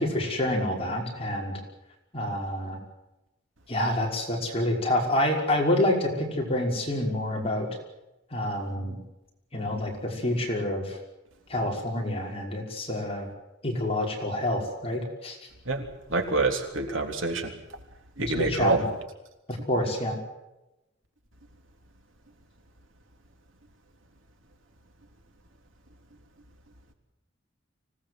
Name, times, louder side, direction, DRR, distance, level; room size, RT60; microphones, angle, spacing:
voice 1, 0.0-1.6 2.1-2.8 3.7-7.7 8.3-9.0 9.5-11.0 11.5-13.3 13.6-15.4 18.2-18.9 19.7-20.2, left 1 dB, 30° left, 0 dB, 5.5 m, -27 dB
voice 2, 16.1-17.5 18.2-18.8, right 3 dB, 80° right, 4 dB, 3.5 m, -26 dB
25.0 x 18.0 x 8.0 m, 0.96 s
head